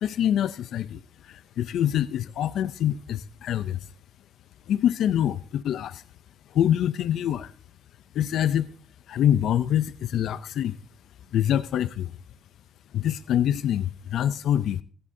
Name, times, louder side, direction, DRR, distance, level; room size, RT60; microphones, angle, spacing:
voice 1, 0.0-3.8 4.7-6.0 6.5-7.5 8.1-8.7 9.1-10.8 11.3-12.1 12.9-14.8, left 10 dB, 75° left, 13 dB, 0.5 m, -25 dB
16.0 x 14.5 x 2.7 m, 0.43 s
cardioid pair, 90°, 0 cm